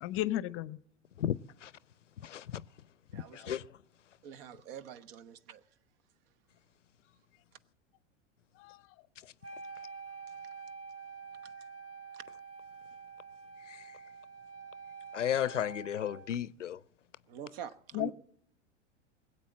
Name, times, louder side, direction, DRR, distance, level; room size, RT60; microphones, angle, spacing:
voice 1, 0.0-0.8 8.6-8.8 17.9-18.1, left 14 dB, 35° left, 0.7 m, -33 dB
voice 2, 1.2-1.7 2.2-2.6 3.1-3.6 13.7-13.9 15.1-16.8, left 10 dB, 85° left, 0.5 m, -34 dB
voice 3, 3.1-3.6 4.2-5.6 12.1-12.2 17.3-18.1, right 9 dB, 55° right, 1.0 m, -45 dB
Wind instrument woodwind instrument, 9.4-16.4, right 5 dB, 40° right, 2.0 m, -47 dB
20.5 x 8.3 x 7.5 m
figure-of-eight pair, 90°, 36 cm